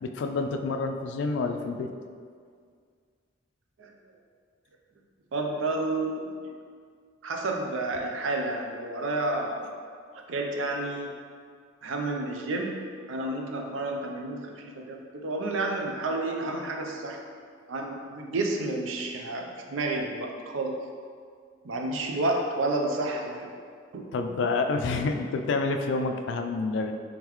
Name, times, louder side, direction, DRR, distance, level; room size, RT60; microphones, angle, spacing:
voice 1, 0.0-1.9 24.1-26.9, left 3 dB, 70° left, 5 dB, 0.3 m, -28 dB
voice 2, 5.3-6.3 7.2-9.7 10.3-11.1 11.8-17.2 17.7-20.8 21.6-23.5 23.9-24.1, right 2 dB, 90° right, 2 dB, 0.5 m, -30 dB
3.8 x 3.4 x 3.0 m, 2.1 s
head